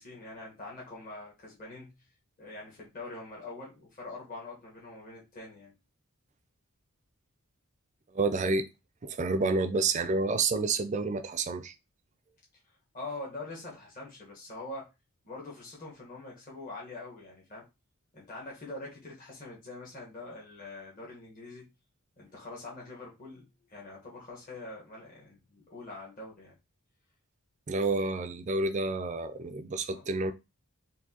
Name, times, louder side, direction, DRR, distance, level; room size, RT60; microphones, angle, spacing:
voice 1, 0.0-1.9 2.4-5.7 12.9-14.9 15.2-17.6 18.1-21.7 22.2-26.5 29.9-30.1, left 2 dB, 40° left, 1.3 m, -44 dB
voice 2, 8.1-8.7 9.0-11.7 27.7-30.3, right 3 dB, 30° right, 0.4 m, -29 dB
4.4 x 2.7 x 2.8 m
head